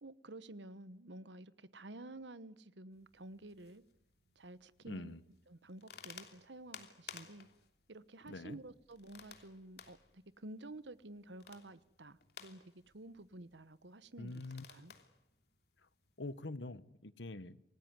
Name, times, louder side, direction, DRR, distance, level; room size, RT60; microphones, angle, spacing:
voice 1, 0.0-3.8 4.3-5.1 5.5-7.5 7.9-14.9, right 2 dB, 75° right, 1.2 m, -51 dB
sound 1, 2.9-16.5, left 7 dB, 60° left, 3.1 m, -58 dB
voice 2, 4.8-5.2 8.3-8.6 14.2-14.6 16.2-17.6, left 2 dB, 80° left, 1.3 m, -45 dB
27.5 x 19.0 x 9.6 m
head